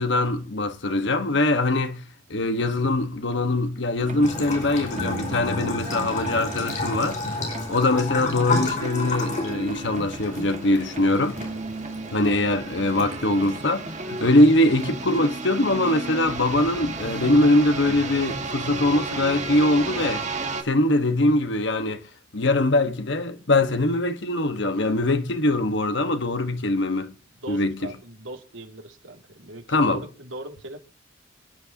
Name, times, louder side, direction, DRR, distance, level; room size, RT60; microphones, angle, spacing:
voice 1, 0.0-2.0 2.3-7.2 7.7-11.4 12.1-20.3 20.6-22.0 22.3-27.1 27.5-27.9 29.7-30.0, left 2 dB, 65° left, 1.3 m, -22 dB
sound 1, 4.0-20.6, right 2 dB, 40° right, 1.9 m, -33 dB
Bathtub (filling or washing) / Trickle dribble, 4.2-15.2, left 2 dB, 40° left, 5.2 m, -33 dB
voice 2, 27.4-30.8, right 2 dB, 85° right, 2.6 m, -39 dB
25.5 x 11.0 x 2.9 m
head